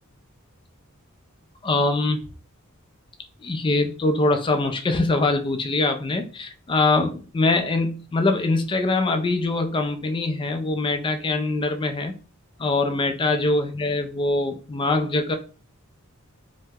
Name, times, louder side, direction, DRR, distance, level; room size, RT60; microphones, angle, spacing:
voice 1, 1.6-2.2 3.4-12.1 12.6-15.3, left 2 dB, 25° left, 6 dB, 0.4 m, -23 dB
2.8 x 2.1 x 3.4 m, 0.36 s
head